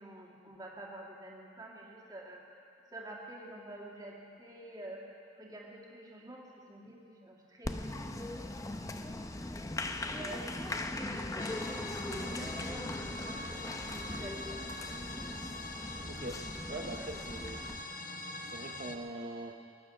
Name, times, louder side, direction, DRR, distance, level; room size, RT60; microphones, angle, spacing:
voice 1, 0.0-2.4 2.9-8.5 10.0-15.4 16.7-17.4, right 1 dB, 20° right, -2 dB, 2.1 m, -48 dB
Applause, 7.6-17.8, left 2 dB, 20° left, 0.6 m, -40 dB
sound 1, 11.4-19.0, left 2 dB, 45° left, 0.9 m, -43 dB
voice 2, 16.0-17.6 18.4-19.6, right 2 dB, 50° right, 1 dB, 0.8 m, -42 dB
21.0 x 10.5 x 6.0 m, 2.5 s
head